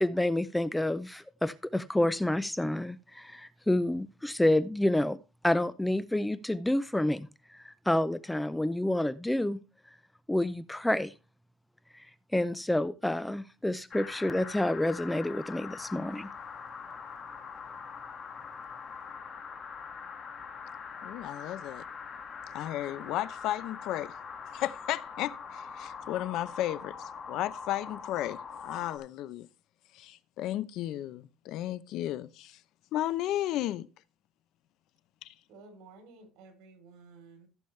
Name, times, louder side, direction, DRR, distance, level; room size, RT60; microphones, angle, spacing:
voice 1, 0.0-5.2 5.4-9.6 10.3-11.1 11.9-12.0 12.3-16.3, left 1 dB, 5° left, 0.5 m, -29 dB
sound 1, 13.9-29.0, left 6 dB, 35° left, 2.0 m, -43 dB
voice 2, 21.0-21.8 22.5-24.1 24.5-26.9 27.3-28.4 28.6-29.5 29.9-32.6 32.9-33.9 35.2-35.3, left 13 dB, 70° left, 0.6 m, -34 dB
voice 3, 35.5-37.5, right 3 dB, 80° right, 3.4 m, -53 dB
15.0 x 7.1 x 3.2 m
cardioid pair, 130°, 0 cm